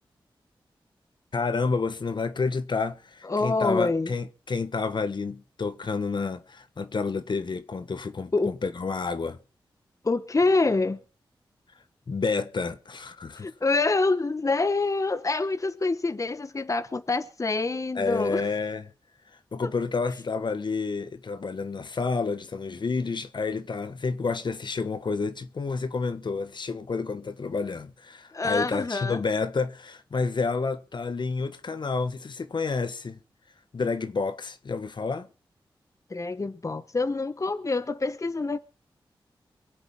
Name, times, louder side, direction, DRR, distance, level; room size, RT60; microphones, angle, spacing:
voice 1, 1.3-9.4 12.1-13.5 17.9-18.8 19.5-33.2 33.7-35.3, left 4 dB, 60° left, 1.4 m, -29 dB
voice 2, 3.2-4.1 8.3-8.5 10.0-11.0 13.4-18.4 19.6-19.7 28.3-29.2 36.1-38.6, left 3 dB, 35° left, 1.1 m, -26 dB
23.0 x 8.0 x 5.6 m
cardioid pair, 45°, 9 cm